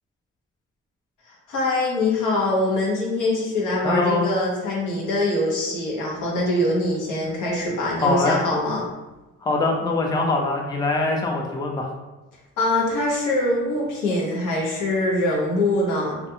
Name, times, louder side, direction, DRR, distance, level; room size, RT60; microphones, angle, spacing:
voice 1, 1.5-8.9 12.6-16.2, left 1 dB, 85° left, -3 dB, 0.8 m, -23 dB
voice 2, 3.8-4.3 7.9-8.4 9.4-11.9, left 3 dB, 15° left, 1 dB, 0.4 m, -23 dB
2.4 x 2.2 x 2.7 m, 1.1 s
cardioid pair, 90°, 30 cm